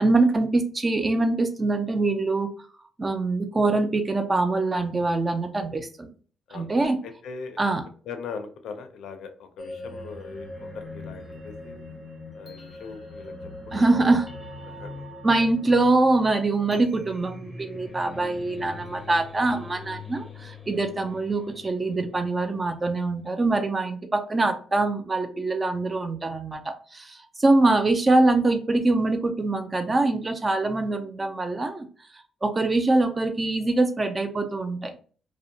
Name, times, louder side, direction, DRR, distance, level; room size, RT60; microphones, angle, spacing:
voice 1, 0.0-2.5 3.0-6.1 6.5-7.0 7.6-7.8 13.7-14.3 15.2-31.8 32.4-35.0, right 2 dB, 25° right, 7 dB, 0.4 m, -24 dB
voice 2, 7.0-7.6 8.1-11.7 12.3-13.4 13.7-14.0 14.6-15.5 18.1-18.3, left 5 dB, 75° left, 7 dB, 0.5 m, -40 dB
sound 1, 9.6-22.6, left 2 dB, 5° right, 0.9 m, -42 dB
2.6 x 2.1 x 2.6 m, 0.41 s
cardioid pair, 90°, 0 cm